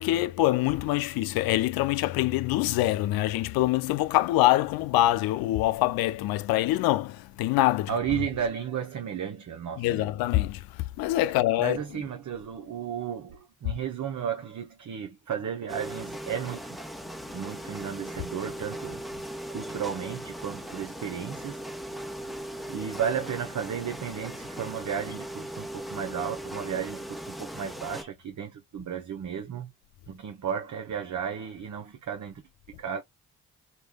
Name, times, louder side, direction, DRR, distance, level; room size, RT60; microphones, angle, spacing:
voice 1, 0.0-7.9 9.8-12.0, left 15 dB, 80° left, 0.5 m, -25 dB
voice 2, 7.9-10.1 11.6-16.8 17.3-21.6 22.7-29.7 30.1-33.0, right 8 dB, 55° right, 0.9 m, -34 dB
sound 1, 15.7-28.0, right 1 dB, ahead, 1.0 m, -39 dB
4.4 x 3.4 x 2.3 m
hypercardioid pair, 40°, 36 cm